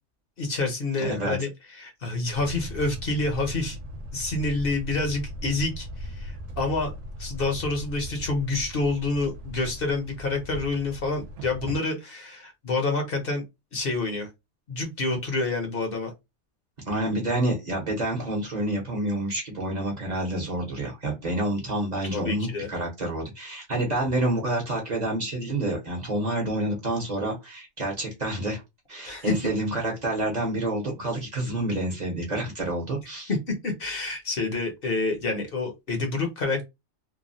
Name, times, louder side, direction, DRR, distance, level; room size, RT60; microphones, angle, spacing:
voice 1, 0.4-3.8 4.1-6.9 7.2-13.4 13.7-14.3 14.7-16.1 22.0-22.7 29.0-29.3 33.3-36.7, left 3 dB, 55° left, 0.9 m, -28 dB
voice 2, 1.0-1.4 16.8-28.6 28.9-33.3, right 1 dB, 40° right, 0.9 m, -28 dB
sound 1, 2.3-11.8, equal, 80° right, 0.9 m, -38 dB
3.0 x 2.2 x 2.6 m
omnidirectional pair, 1.2 m